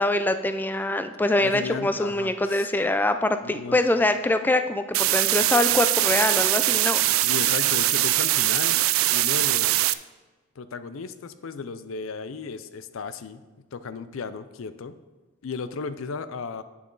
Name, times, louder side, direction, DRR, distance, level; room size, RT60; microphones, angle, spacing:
voice 1, 0.0-7.0, left 1 dB, 10° left, 9 dB, 0.3 m, -24 dB
voice 2, 1.4-2.7 3.4-3.8 7.1-8.8 9.1-9.7 10.6-13.4 13.7-15.0 15.4-16.6, left 5 dB, 75° left, 13 dB, 0.5 m, -35 dB
sound 1, 4.9-9.9, right 16 dB, 80° right, 0.3 m, -22 dB
8.5 x 7.0 x 3.9 m, 1.2 s
head